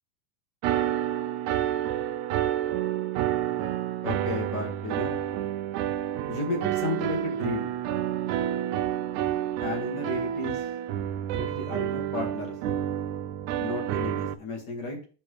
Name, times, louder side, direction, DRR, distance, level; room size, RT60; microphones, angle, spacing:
sound 1, 0.6-14.3, right 11 dB, 85° right, 1.7 m, -29 dB
voice 1, 4.0-5.2 6.3-7.7 9.6-10.7 11.3-12.6 13.6-15.0, left 3 dB, 40° left, 2 dB, 1.9 m, -33 dB
10.5 x 4.6 x 3.2 m, 0.36 s
omnidirectional pair, 4.0 m